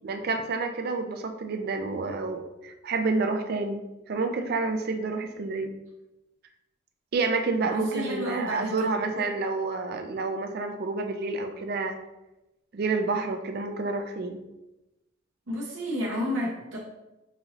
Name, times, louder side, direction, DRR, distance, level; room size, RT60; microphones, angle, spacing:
voice 1, 0.0-3.8 4.1-5.7 7.1-12.0 12.7-14.4, right 3 dB, 50° right, 6 dB, 0.4 m, -29 dB
voice 2, 7.7-9.1 15.5-16.8, equal, 85° right, -3 dB, 1.0 m, -31 dB
5.5 x 2.9 x 2.8 m, 0.97 s
head